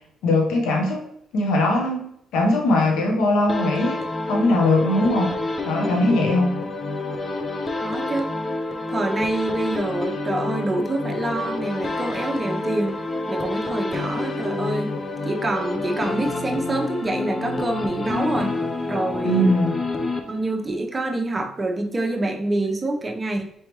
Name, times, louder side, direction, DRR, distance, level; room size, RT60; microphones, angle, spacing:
voice 1, 0.2-1.0 1.3-4.0 4.3-5.4 5.6-6.6 19.2-19.8, left 1 dB, 90° left, 1 dB, 1.0 m, -20 dB
sound 1, 3.5-20.7, left 2 dB, 35° left, 0.6 m, -28 dB
voice 2, 7.8-8.3 8.9-13.0 13.3-14.9 15.3-18.6 18.9-19.5 20.3-23.4, right 2 dB, 25° right, 3 dB, 0.8 m, -26 dB
4.6 x 3.4 x 3.0 m, 0.74 s
cardioid pair, 85°, 0 cm